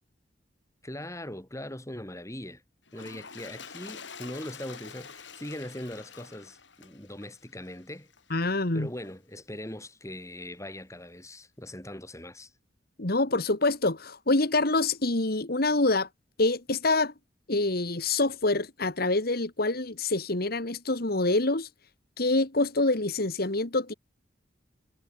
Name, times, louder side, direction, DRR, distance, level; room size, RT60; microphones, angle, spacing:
voice 1, 0.8-2.6 2.9-8.1 8.4-12.5, left 1 dB, 15° left, 6.3 m, -41 dB
Toilet flush, 2.9-8.3 9.0-9.1, left 6 dB, 85° left, 6.0 m, -47 dB
voice 2, 8.3-8.9 13.0-16.1 16.4-17.1 17.5-21.7 22.2-23.9, left 2 dB, 55° left, 2.1 m, -26 dB
head